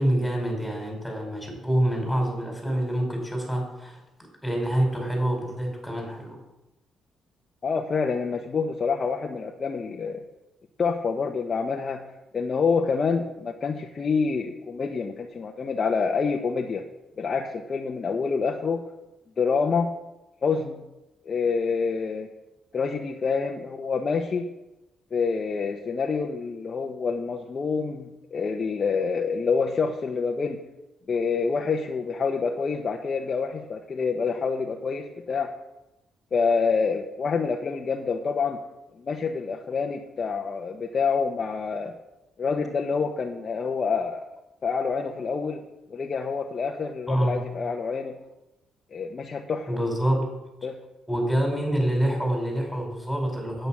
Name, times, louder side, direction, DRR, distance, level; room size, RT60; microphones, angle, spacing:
voice 1, 0.0-4.0 4.4-6.4 47.1-47.4 49.7-50.3 51.1-53.7, right 1 dB, ahead, 0 dB, 5.2 m, -26 dB
voice 2, 7.6-10.2 10.8-12.0 12.3-16.8 17.2-18.8 19.4-19.9 20.4-20.8 21.3-22.3 22.7-24.5 25.1-30.6 31.1-35.5 36.3-38.6 39.0-41.9 42.4-44.2 44.6-45.6 45.9-48.2 48.9-49.7 50.6-50.8, left 5 dB, 40° left, 1 dB, 1.0 m, -27 dB
9.4 x 9.0 x 6.2 m, 0.97 s
cardioid pair, 90°, 0 cm